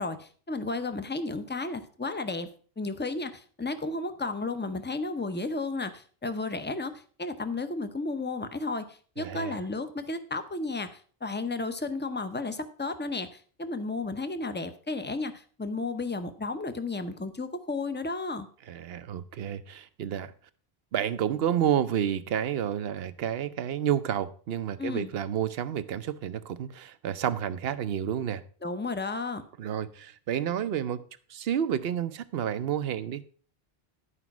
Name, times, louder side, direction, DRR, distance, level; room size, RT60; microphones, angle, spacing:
voice 1, 0.0-2.5 2.8-18.5 24.8-25.1 28.6-29.5, left 3 dB, 10° left, 0.6 m, -33 dB
voice 2, 9.2-9.6 18.7-20.3 20.9-28.4 29.6-31.0 31.3-33.2, right 9 dB, 70° right, 0.9 m, -30 dB
11.5 x 5.1 x 5.9 m
omnidirectional pair, 1.1 m